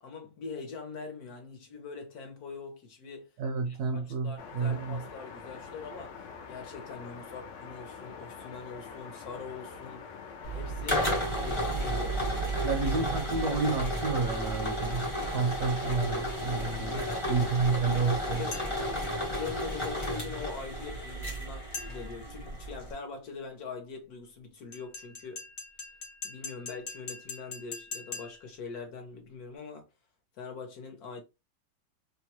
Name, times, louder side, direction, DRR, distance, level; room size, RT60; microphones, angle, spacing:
voice 1, 0.0-3.4 3.7-12.3 16.9-25.4 26.2-29.9 30.3-31.2, left 4 dB, 65° left, 1.1 m, -43 dB
voice 2, 3.4-5.0 12.6-17.0 17.3-18.4, right 4 dB, 70° right, 1.0 m, -30 dB
sound 1, 4.4-11.1, left 6 dB, 80° left, 0.6 m, -45 dB
sound 2, 10.4-22.9, equal, 30° left, 0.6 m, -32 dB
sound 3, 18.5-19.0 21.7-22.2 24.7-28.6, left 4 dB, 50° left, 0.9 m, -42 dB
3.0 x 2.2 x 2.8 m
omnidirectional pair, 2.0 m